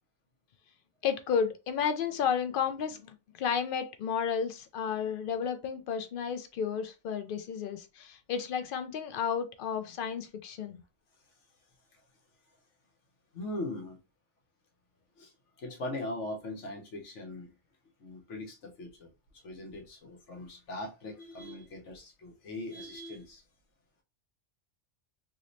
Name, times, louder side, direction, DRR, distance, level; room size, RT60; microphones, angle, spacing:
voice 1, 1.0-10.8, left 7 dB, 60° left, 0.6 m, -32 dB
voice 2, 13.3-14.0 15.2-15.3 15.6-17.5 18.0-19.1 19.4-23.4, left 1 dB, 75° left, 1.3 m, -40 dB
3.1 x 2.8 x 2.6 m
omnidirectional pair, 1.2 m